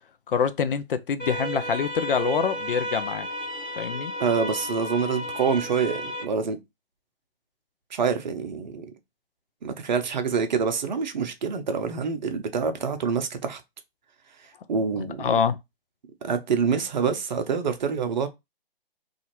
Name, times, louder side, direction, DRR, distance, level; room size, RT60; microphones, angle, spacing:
voice 1, 0.3-3.3 3.8-4.1 15.0-15.6, left 6 dB, 60° left, 0.5 m, -25 dB
sound 1, 1.2-6.2, equal, 5° left, 0.4 m, -33 dB
voice 2, 4.2-6.6 7.9-8.9 9.6-13.6 14.7-15.3 16.2-18.3, right 6 dB, 45° right, 0.6 m, -26 dB
2.5 x 2.4 x 2.8 m
figure-of-eight pair, 135°, 31 cm